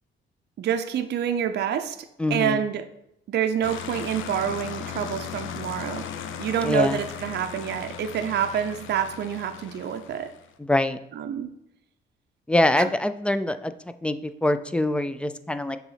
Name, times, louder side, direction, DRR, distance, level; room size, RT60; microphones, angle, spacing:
voice 1, 0.6-2.0 2.3-2.9 3.3-6.1 6.4-10.3 11.1-11.5 12.8-12.9, right 8 dB, 60° right, 7 dB, 0.5 m, -27 dB
voice 2, 2.2-2.6 6.6-7.0 10.6-11.0 12.5-13.7 14.0-15.8, left 1 dB, 5° left, 11 dB, 0.4 m, -24 dB
sound 1, 3.6-10.5, left 8 dB, 80° left, 0.6 m, -37 dB
6.9 x 3.0 x 5.6 m, 0.83 s
cardioid pair, 90°, 20 cm